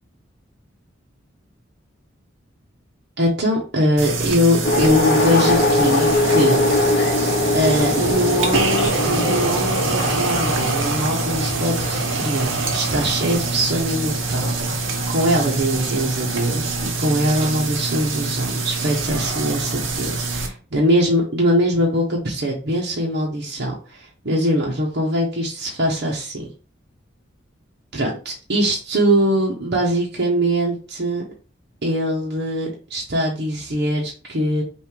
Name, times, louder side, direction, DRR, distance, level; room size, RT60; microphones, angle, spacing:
voice 1, 3.2-7.0 7.5-26.5 27.9-31.2 31.8-34.6, equal, 60° right, -3 dB, 1.0 m, -22 dB
sound 1, 4.0-20.5, right 3 dB, 85° right, 1.0 m, -25 dB
sound 2, 4.6-16.9, left 1 dB, 55° left, 0.8 m, -23 dB
5.7 x 2.7 x 3.3 m, 0.36 s
head